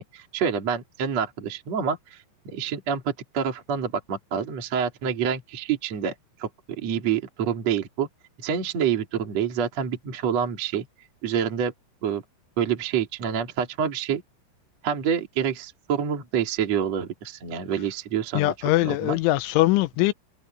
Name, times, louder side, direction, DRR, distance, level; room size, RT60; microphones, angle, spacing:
voice 1, 0.0-2.2 2.5-6.1 6.4-6.5 6.8-8.1 8.4-10.8 11.2-11.7 12.0-12.2 12.6-14.2 14.8-18.5 18.8-19.2, right 7 dB, 40° right, 3.2 m, -27 dB
voice 2, 18.3-20.1, left 18 dB, 85° left, 3.1 m, -22 dB
omnidirectional pair, 5.6 m